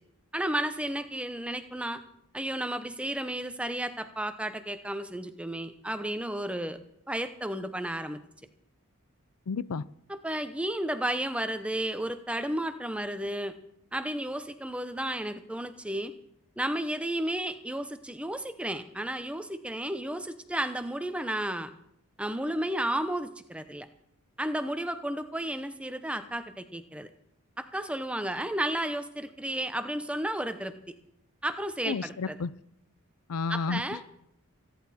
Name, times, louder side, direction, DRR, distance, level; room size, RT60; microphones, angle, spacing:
voice 1, 0.3-2.0 2.3-6.8 7.1-8.2 10.2-13.5 13.9-16.1 16.6-21.7 22.2-23.9 24.4-27.1 27.6-30.7 31.4-32.4 33.5-34.0, right 1 dB, 5° right, 9 dB, 0.7 m, -32 dB
voice 2, 9.5-9.8 31.8-32.5 33.3-34.0, left 4 dB, 85° left, 18 dB, 0.5 m, -31 dB
25.5 x 10.5 x 4.2 m, 0.76 s
head